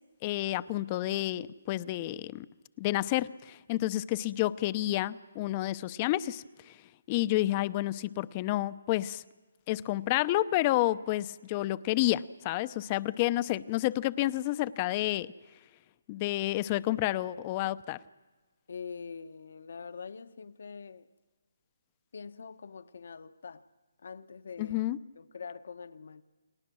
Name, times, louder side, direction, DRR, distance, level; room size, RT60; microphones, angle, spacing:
voice 1, 0.2-2.5 2.8-6.8 7.1-9.2 9.7-15.3 16.1-18.0 24.6-25.0, left 16 dB, 25° left, 0.7 m, -30 dB
voice 2, 18.7-21.1 22.1-23.7 24.0-24.8 25.2-26.2, left 5 dB, 70° left, 1.1 m, -44 dB
29.5 x 22.0 x 6.3 m
hypercardioid pair, 155°, 0 cm